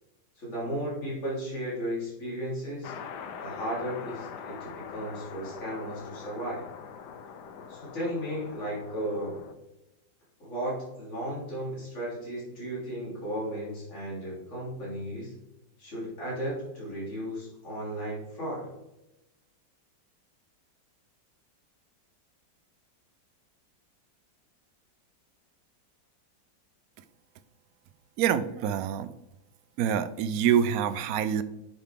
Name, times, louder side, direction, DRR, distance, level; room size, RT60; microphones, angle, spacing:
voice 1, 0.4-2.9 3.4-6.7 7.7-9.4 10.4-15.3 15.8-18.7, equal, 40° left, -6 dB, 3.8 m, -35 dB
sound 1, 2.8-9.5, left 6 dB, 70° left, 1.3 m, -43 dB
voice 2, 28.2-29.1 29.8-31.4, right 8 dB, 65° right, 12 dB, 0.9 m, -26 dB
10.0 x 5.9 x 3.6 m, 0.93 s
omnidirectional pair, 2.0 m